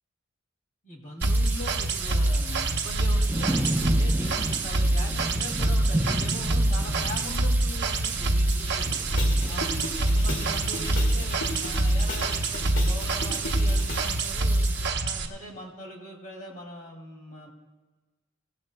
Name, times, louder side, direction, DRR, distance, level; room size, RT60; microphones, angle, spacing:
voice 1, 0.8-9.1 9.5-14.6 15.0-17.5, equal, 40° left, 0 dB, 2.6 m, -41 dB
sound 1, 1.2-14.9, right 1 dB, 10° right, 0.7 m, -34 dB
sound 2, 1.2-15.3, right 2 dB, 60° right, 0.9 m, -25 dB
sound 3, 9.1-14.2, left 2 dB, 70° left, 2.2 m, -37 dB
24.0 x 15.0 x 2.2 m, 1.2 s
head